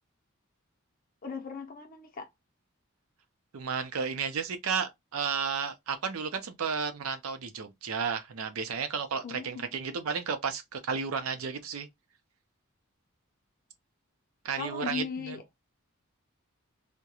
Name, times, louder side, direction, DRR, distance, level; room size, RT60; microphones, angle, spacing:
voice 1, 1.2-2.3 9.2-9.7 14.6-15.4, left 5 dB, 40° left, 0.6 m, -38 dB
voice 2, 3.5-11.9 14.4-15.4, right 6 dB, 85° right, 0.5 m, -33 dB
2.3 x 2.1 x 2.7 m
head